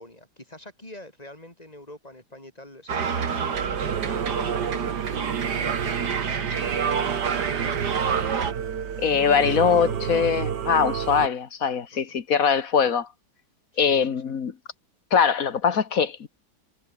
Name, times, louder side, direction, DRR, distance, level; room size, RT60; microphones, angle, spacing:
voice 1, 0.0-7.2 7.4-9.0 9.4-10.4 11.9-12.1 13.8-14.3, left 1 dB, 20° left, 5.9 m, -45 dB
sound 1, 2.9-8.5, right 6 dB, 70° right, 2.5 m, -29 dB
Singing / Musical instrument, 3.5-11.3, right 8 dB, 85° right, 2.1 m, -29 dB
voice 2, 9.0-13.1 13.8-14.5 15.1-16.3, left 6 dB, 55° left, 1.8 m, -22 dB
omnidirectional pair, 1.8 m